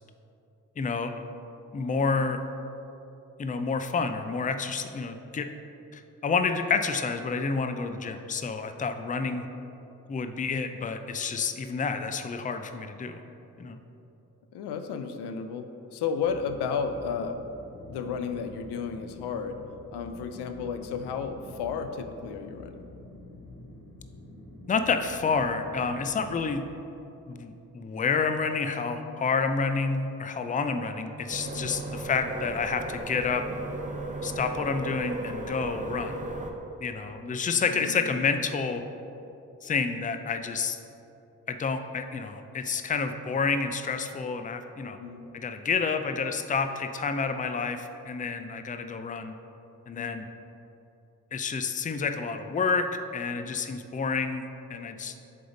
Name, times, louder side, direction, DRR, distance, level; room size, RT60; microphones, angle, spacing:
voice 1, 0.8-1.1 1.7-2.4 3.4-5.5 5.9-9.5 10.1-13.2 13.6-13.8 24.7-26.7 27.3-33.5 34.2-36.2 36.8-38.8 39.6-40.8 41.5-45.0 45.3-49.3 49.9-50.3 51.3-55.2, left 5 dB, 20° left, 8 dB, 0.4 m, -29 dB
voice 2, 14.5-17.4 17.9-19.6 19.9-22.9 26.2-26.4 31.4-31.7 37.7-38.1 44.8-45.2 49.9-50.1 53.3-53.5, left 6 dB, 80° left, 8 dB, 0.5 m, -33 dB
sound 1, 16.2-26.5, left 2 dB, 55° left, 1.4 m, -47 dB
sound 2, 31.3-36.5, right 2 dB, 20° right, 0.8 m, -35 dB
7.5 x 3.6 x 4.0 m, 2.9 s
supercardioid pair, 40°, 40 cm